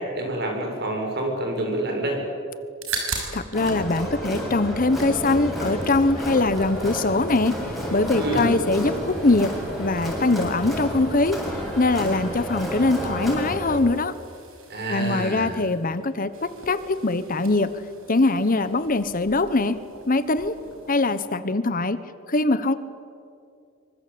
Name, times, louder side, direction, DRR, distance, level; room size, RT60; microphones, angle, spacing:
voice 1, 0.0-2.2 8.1-8.6 14.7-15.7, right 1 dB, 55° right, 2 dB, 7.4 m, -27 dB
sound 1, 2.6-3.9 4.1-5.2 5.5-21.0, right 4 dB, 85° right, 6.2 m, -41 dB
voice 2, 3.3-7.5 7.9-9.5 9.8-11.4 11.8-14.1 14.9-17.7 18.1-19.8 20.1-20.5 20.9-22.0 22.3-22.8, left 2 dB, 40° left, 13 dB, 1.1 m, -22 dB
Crowd, 3.5-13.8, equal, ahead, 7.9 m, -31 dB
26.0 x 25.0 x 8.7 m, 2.4 s
head